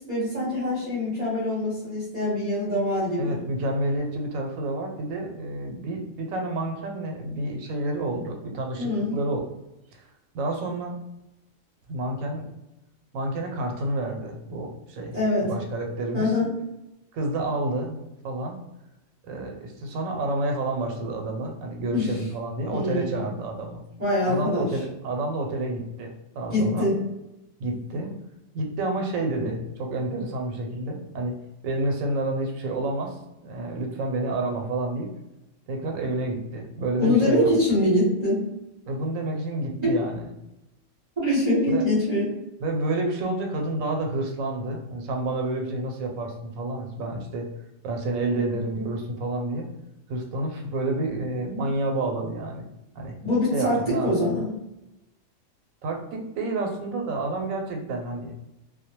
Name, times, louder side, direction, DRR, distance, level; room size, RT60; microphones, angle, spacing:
voice 1, 0.1-3.4 8.8-9.2 15.1-15.5 16.1-16.5 21.9-22.2 22.7-23.2 24.0-24.7 26.5-27.0 37.0-38.5 39.8-39.9 41.2-42.3 53.2-54.5, left 1 dB, 35° right, -9 dB, 0.8 m, -24 dB
voice 2, 3.2-9.4 9.9-10.1 10.3-10.9 11.9-12.4 13.1-15.1 15.4-16.3 17.1-18.6 19.2-23.8 24.2-26.9 27.6-28.1 28.5-31.4 31.6-35.1 35.7-37.5 38.9-40.3 41.7-41.8 42.6-47.5 47.8-49.7 50.1-52.6 52.9-53.2 53.5-54.1 55.8-58.4, right 2 dB, 85° right, 2 dB, 1.0 m, -29 dB
2.2 x 2.1 x 2.8 m, 0.91 s
omnidirectional pair, 1.4 m